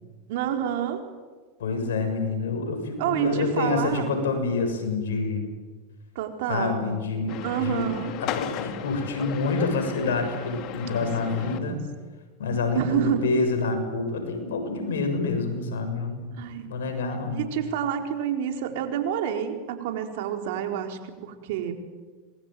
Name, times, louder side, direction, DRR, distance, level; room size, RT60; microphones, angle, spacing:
voice 1, 0.3-1.0 3.0-4.1 6.1-6.9 7.4-8.1 10.8-11.1 11.4-11.8 12.7-13.4 16.4-16.7 17.3-21.7, right 9 dB, 70° right, 5 dB, 4.2 m, -28 dB
voice 2, 1.6-5.4 6.5-11.8 12.4-16.3 16.6-17.4, left 3 dB, 85° left, 6 dB, 6.8 m, -27 dB
sound 1, 7.3-11.6, left 10 dB, 50° left, 2.5 m, -36 dB
26.5 x 21.5 x 9.3 m, 1.4 s
hypercardioid pair, 110°, 0 cm